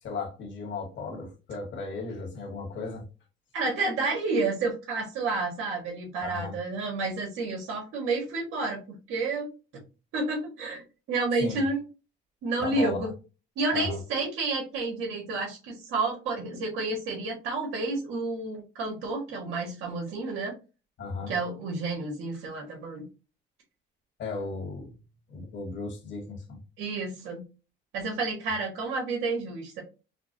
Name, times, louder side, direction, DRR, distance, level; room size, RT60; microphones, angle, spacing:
voice 1, 0.0-3.0 6.2-6.5 11.4-11.6 12.6-13.1 13.7-14.0 21.0-21.3 24.2-24.9 25.3-26.6, left 3 dB, 65° left, 1.5 m, -35 dB
voice 2, 3.5-8.8 9.1-9.5 10.1-10.8 11.1-11.8 12.4-13.1 13.6-20.5 21.3-23.0 26.8-27.4 27.9-29.8, right 3 dB, 90° right, 1.4 m, -30 dB
5.8 x 2.2 x 2.7 m
cardioid pair, 90°, 20 cm